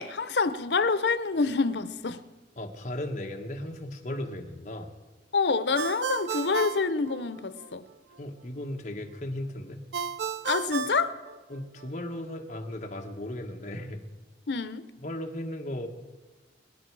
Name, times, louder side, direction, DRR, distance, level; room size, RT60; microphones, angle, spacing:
voice 1, 0.0-2.2 5.3-7.8 10.4-11.2 14.5-14.9, left 4 dB, 80° left, 0.8 m, -27 dB
voice 2, 2.6-4.9 8.2-9.8 11.5-14.0 15.0-15.9, left 1 dB, 40° left, 1.5 m, -36 dB
Ringtone, 5.7-7.7 9.9-11.9, right 6 dB, 75° right, 0.5 m, -34 dB
24.5 x 10.5 x 4.8 m
head